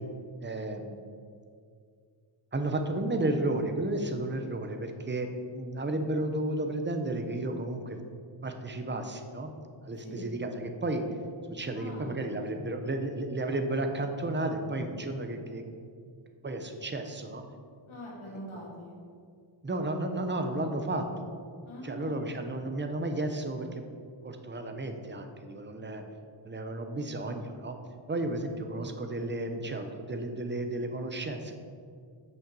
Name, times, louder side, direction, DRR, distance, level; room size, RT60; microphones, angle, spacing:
voice 1, 0.4-1.0 2.5-8.0 8.4-9.5 9.8-11.0 11.5-15.6 16.4-17.4 19.6-21.3 21.8-23.9 24.2-26.0 26.4-27.8 28.1-31.6, right 2 dB, 20° right, 5 dB, 0.7 m, -33 dB
voice 2, 11.8-12.7 17.9-19.0 21.7-22.3, left 1 dB, 75° left, -4 dB, 2.2 m, -43 dB
6.3 x 5.8 x 6.8 m, 2.2 s
wide cardioid pair, 125°, 49 cm